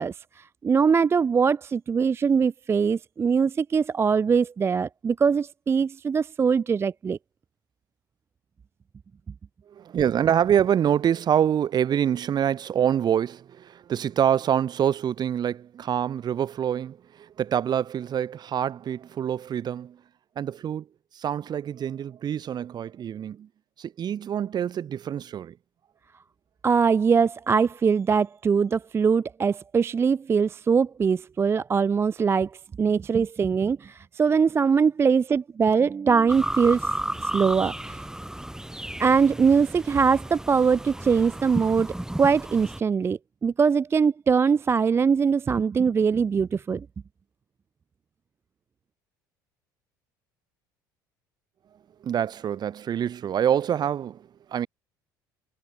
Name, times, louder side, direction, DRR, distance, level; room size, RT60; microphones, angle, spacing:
voice 1, 0.0-7.2 26.6-32.5 32.8-36.9 37.2-38.0 39.0-46.9, right 6 dB, 25° right, 0.4 m, -22 dB
voice 2, 9.7-20.0 20.4-20.9 21.1-23.5 23.8-25.6 52.0-54.7, right 9 dB, 40° right, 0.8 m, -26 dB
sound 1, 36.3-42.8, right 1 dB, 5° right, 4.2 m, -33 dB
hypercardioid pair, 60°, 11 cm